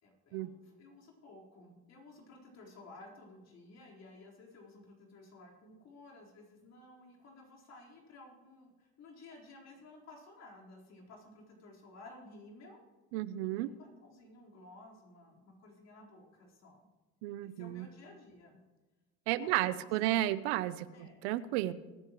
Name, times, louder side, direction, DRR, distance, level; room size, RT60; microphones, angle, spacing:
voice 1, 0.0-12.8 13.5-16.8 17.4-18.6 19.4-20.2 20.9-21.2, left 2 dB, 55° left, -2 dB, 4.1 m, -55 dB
voice 2, 13.1-13.7 17.2-17.9 19.3-21.7, right 15 dB, 90° right, 16 dB, 0.6 m, -33 dB
21.5 x 9.8 x 3.1 m, 1.2 s
supercardioid pair, 85°, 32 cm